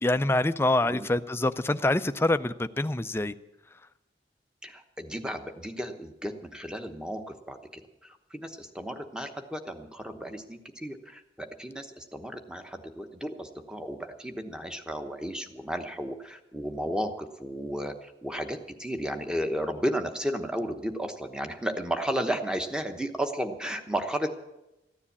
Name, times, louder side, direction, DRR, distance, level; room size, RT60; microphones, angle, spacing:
voice 1, 0.0-3.3, left 2 dB, 15° left, 12 dB, 0.4 m, -25 dB
voice 2, 4.6-24.4, equal, 5° right, 6 dB, 1.0 m, -33 dB
15.0 x 9.8 x 8.5 m, 0.94 s
head